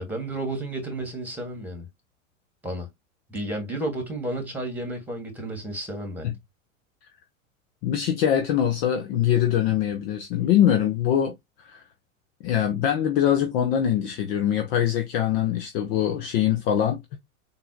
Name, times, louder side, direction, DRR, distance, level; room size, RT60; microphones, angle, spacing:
voice 1, 0.0-1.9 2.6-2.9 3.3-6.3, right 1 dB, 5° right, 1.5 m, -32 dB
voice 2, 7.8-11.3 11.6-11.8 12.4-17.2, left 10 dB, 50° left, 0.7 m, -23 dB
4.0 x 2.6 x 2.6 m
hypercardioid pair, 90°, 41 cm